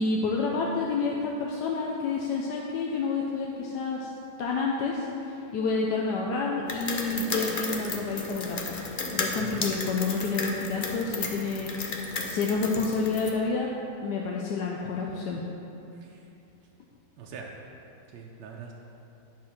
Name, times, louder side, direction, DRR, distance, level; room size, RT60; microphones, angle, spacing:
voice 1, 0.0-4.1 4.4-8.9 9.1-13.7 14.0-15.4, left 4 dB, 75° left, -2 dB, 1.3 m, -29 dB
sound 1, 6.7-13.3, left 3 dB, 50° left, 0.6 m, -33 dB
voice 2, 9.3-9.7 15.9-16.3 17.2-17.6 18.1-18.7, right 6 dB, 80° right, -1 dB, 1.3 m, -43 dB
9.7 x 4.7 x 5.8 m, 2.9 s
omnidirectional pair, 1.8 m